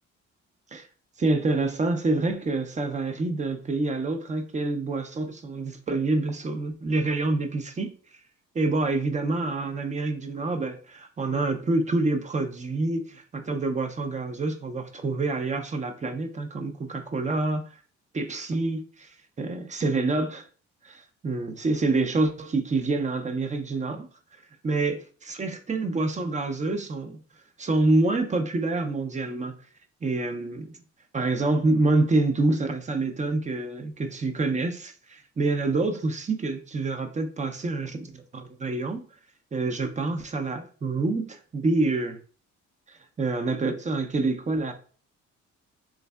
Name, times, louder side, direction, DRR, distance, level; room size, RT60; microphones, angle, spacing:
voice 1, 1.2-7.9 8.5-17.6 18.1-20.5 20.8-24.1 24.6-27.2 27.6-29.5 30.0-30.7 31.1-39.0 39.5-42.2 42.9-44.7, right 2 dB, 25° right, 0.5 m, -27 dB
3.5 x 3.2 x 2.2 m
cardioid pair, 90°, 30 cm